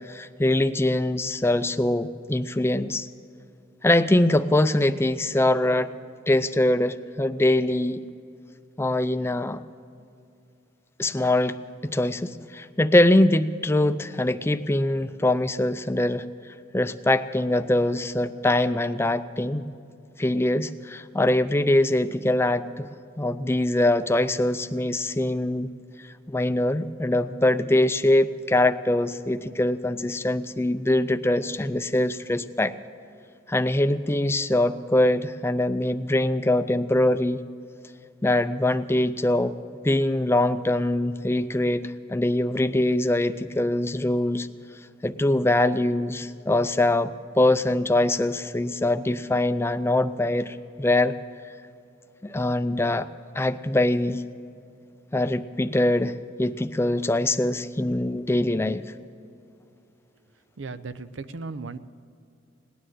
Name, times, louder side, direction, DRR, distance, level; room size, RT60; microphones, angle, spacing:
voice 1, 0.0-3.1 3.8-5.9 6.3-8.0 8.8-9.6 11.0-11.6 11.8-16.2 16.7-19.6 20.2-22.9 23.2-25.7 26.3-32.7 33.5-37.4 38.2-39.5 39.8-44.5 45.0-51.2 52.2-53.1 53.3-54.2 55.1-56.1 56.4-58.8, left 1 dB, 15° left, 11 dB, 0.4 m, -23 dB
voice 2, 60.6-61.8, right 4 dB, 70° right, 13 dB, 0.6 m, -36 dB
18.5 x 10.0 x 7.9 m, 2.5 s
head